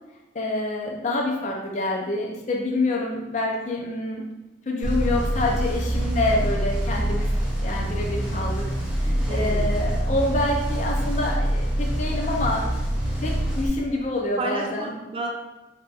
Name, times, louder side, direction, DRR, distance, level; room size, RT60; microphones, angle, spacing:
voice 1, 0.3-4.2 4.7-7.3 7.6-8.6 9.0-12.7 13.2-14.9, left 2 dB, 40° left, -1 dB, 0.4 m, -27 dB
sound 1, 4.8-13.7, right 1 dB, 5° right, 0.8 m, -25 dB
voice 2, 9.3-9.8 14.4-15.3, right 2 dB, 30° right, 1 dB, 0.4 m, -31 dB
3.8 x 2.7 x 2.4 m, 1.1 s
head